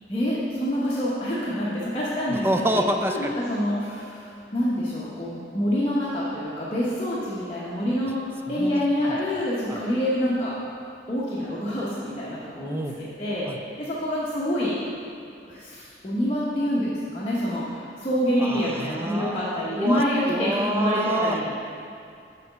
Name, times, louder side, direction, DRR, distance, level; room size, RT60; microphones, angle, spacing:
voice 1, 0.1-2.5 3.1-8.2 8.5-10.5 11.1-13.5 13.8-14.8 15.4-21.6, equal, 30° left, -8 dB, 0.9 m, -26 dB
voice 2, 2.3-3.3 8.6-8.8 9.7-9.8 12.6-13.0 13.5-13.6 18.4-20.0 20.3-21.6, right 1 dB, 15° right, 4 dB, 0.4 m, -27 dB
6.8 x 4.0 x 6.5 m, 2.4 s
head